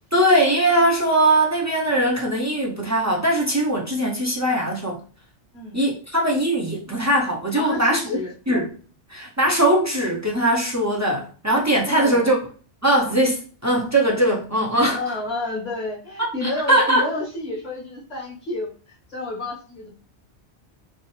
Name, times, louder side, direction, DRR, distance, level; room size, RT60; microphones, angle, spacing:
voice 1, 0.1-5.0 5.7-8.2 8.5-8.7 9.1-12.4 12.8-15.0 16.2-17.1, right 1 dB, 20° right, 0.4 m, -20 dB
voice 2, 7.6-8.3 11.9-12.3 14.9-18.7 19.1-19.9, left 2 dB, 35° left, 1.9 m, -30 dB
4.2 x 2.0 x 3.1 m
omnidirectional pair, 1.2 m